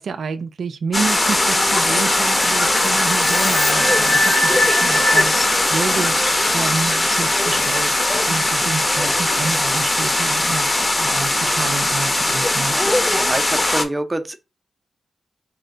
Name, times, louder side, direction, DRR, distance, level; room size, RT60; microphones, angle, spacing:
voice 1, 0.0-12.8, right 5 dB, 70° right, 0.4 m, -29 dB
sound 1, 0.9-13.8, left 1 dB, 20° left, 0.7 m, -19 dB
sound 2, 1.2-9.8, left 2 dB, 60° left, 1.6 m, -25 dB
sound 3, 1.8-8.1, left 3 dB, 80° left, 2.3 m, -40 dB
voice 2, 12.7-14.4, right 1 dB, 15° right, 0.5 m, -26 dB
4.3 x 2.2 x 3.8 m
wide cardioid pair, 110°, 0 cm